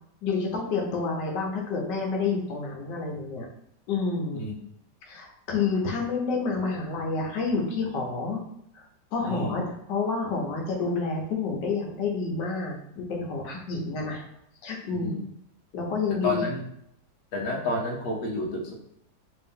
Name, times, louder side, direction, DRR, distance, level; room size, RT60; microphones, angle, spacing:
voice 1, 0.2-3.5 3.9-4.4 5.1-8.4 8.7-8.9 9.1-14.2 14.6-15.2 15.7-16.5, left 4 dB, 80° left, 0 dB, 1.4 m, -29 dB
voice 2, 9.2-9.7 14.9-15.2 16.2-16.6 17.3-18.7, left 2 dB, 60° left, -1 dB, 1.1 m, -30 dB
3.4 x 2.7 x 3.5 m, 0.73 s
omnidirectional pair, 1.9 m